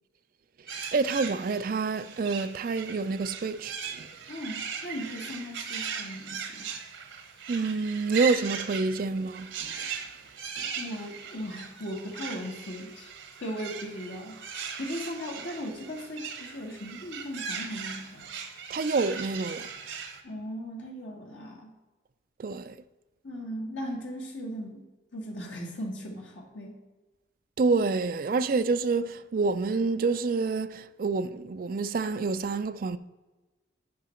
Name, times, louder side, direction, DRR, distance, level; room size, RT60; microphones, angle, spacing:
sound 1, 0.7-20.2, right 7 dB, 85° right, 1.0 m, -39 dB
voice 1, 0.9-4.1 7.5-9.9 10.6-10.7 18.7-19.7 22.4-22.8 27.6-33.0, right 4 dB, 50° right, 0.4 m, -28 dB
voice 2, 4.3-6.7 10.8-13.1 13.4-14.4 14.8-18.3 20.2-21.7 23.2-24.9 25.1-26.8, equal, 85° left, 1.5 m, -38 dB
9.2 x 5.1 x 4.3 m
head